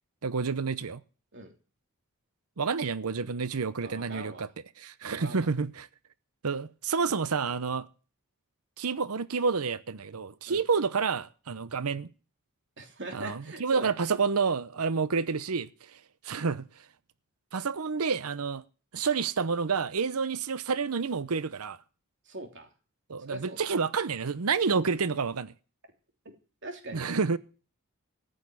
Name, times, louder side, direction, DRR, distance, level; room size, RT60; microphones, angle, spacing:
voice 1, 0.2-1.0 2.6-4.5 4.8-5.9 6.4-7.9 8.8-12.1 13.1-16.7 17.5-18.6 18.9-21.8 23.1-25.5 26.9-27.4, right 5 dB, 80° right, 0.8 m, -29 dB
voice 2, 3.8-4.5 5.0-5.5 10.5-10.6 12.8-13.9 22.2-22.7 23.2-23.7 26.6-27.1, right 2 dB, 55° right, 3.1 m, -42 dB
14.5 x 6.5 x 9.5 m
head